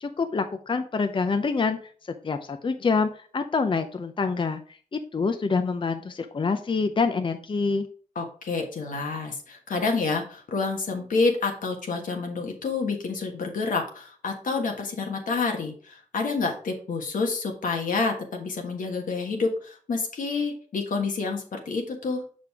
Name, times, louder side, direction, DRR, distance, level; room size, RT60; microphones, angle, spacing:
voice 1, 0.0-1.8 2.2-4.6 4.9-7.9, left 4 dB, 40° left, 8 dB, 0.6 m, -26 dB
voice 2, 8.1-22.2, left 4 dB, 85° left, 2 dB, 1.5 m, -28 dB
6.5 x 5.1 x 3.5 m, 0.43 s
cardioid pair, 65°, 13 cm